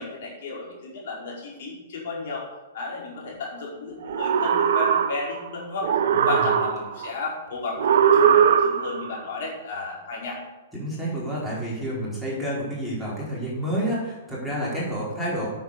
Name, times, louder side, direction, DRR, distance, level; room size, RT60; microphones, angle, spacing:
voice 1, 0.0-2.4 2.7-5.9 6.2-10.4 15.3-15.5, left 3 dB, 60° left, -3 dB, 4.9 m, -33 dB
sound 1, 4.0-5.5 5.8-7.1 7.8-9.1, right 8 dB, 65° right, 1.1 m, -20 dB
voice 2, 10.7-15.5, equal, 5° left, -8 dB, 4.7 m, -29 dB
9.5 x 8.4 x 6.9 m, 1.1 s
hypercardioid pair, 145°, 0 cm